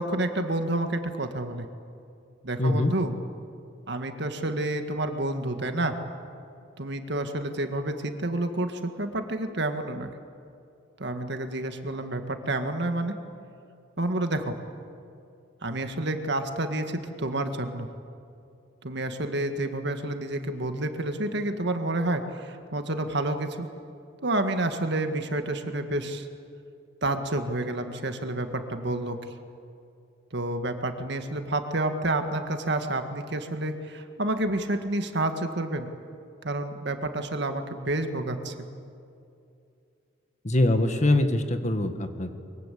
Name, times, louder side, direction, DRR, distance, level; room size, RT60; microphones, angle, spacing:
voice 1, 0.0-1.7 2.4-3.1 3.9-6.0 6.8-10.1 11.0-13.2 14.0-14.5 15.6-17.9 18.8-23.7 24.2-26.3 27.0-29.2 30.3-35.9 36.4-38.5, right 2 dB, 60° right, 7 dB, 1.9 m, -29 dB
voice 2, 2.6-2.9 40.4-42.3, left 1 dB, 40° left, 7 dB, 1.7 m, -23 dB
23.5 x 23.0 x 8.5 m, 2.5 s
head